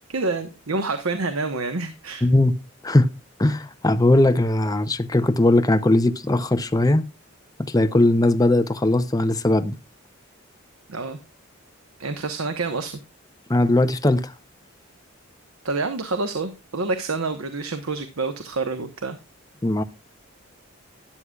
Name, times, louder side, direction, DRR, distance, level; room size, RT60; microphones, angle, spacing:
voice 1, 0.1-2.3 10.9-11.2 12.0-13.0 15.6-19.2, right 3 dB, 85° right, 1.1 m, -27 dB
voice 2, 2.2-2.5 2.8-3.1 3.4-7.1 7.7-9.8 13.5-14.3 19.6-19.8, left 1 dB, 15° left, 0.6 m, -19 dB
12.5 x 9.8 x 2.3 m
head